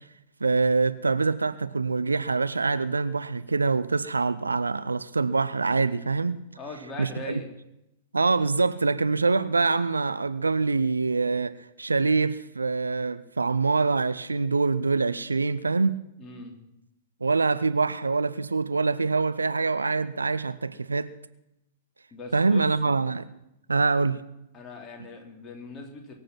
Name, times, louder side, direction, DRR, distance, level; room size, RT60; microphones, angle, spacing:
voice 1, 0.4-6.4 7.0-7.4 8.1-16.0 17.2-21.1 22.3-23.3 23.7-24.2, right 4 dB, 80° right, 0.6 m, -25 dB
voice 2, 6.6-7.5 16.2-16.5 22.1-22.6 24.5-26.1, left 2 dB, 25° left, 3.3 m, -40 dB
23.0 x 7.7 x 6.1 m
figure-of-eight pair, 100°, 0 cm